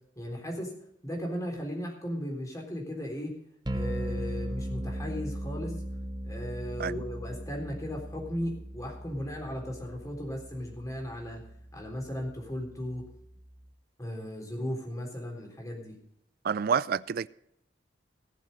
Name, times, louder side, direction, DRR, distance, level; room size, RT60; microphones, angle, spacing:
voice 1, 0.2-0.7 1.0-3.3 3.7-5.8 6.2-11.4 11.7-13.1 14.0-15.9, equal, 20° left, 3.7 m, -36 dB
sound 1, 3.7-13.7, right 1 dB, 25° right, 0.8 m, -39 dB
voice 2, 16.4-17.3, right 6 dB, 55° right, 0.4 m, -28 dB
18.0 x 7.3 x 5.3 m
head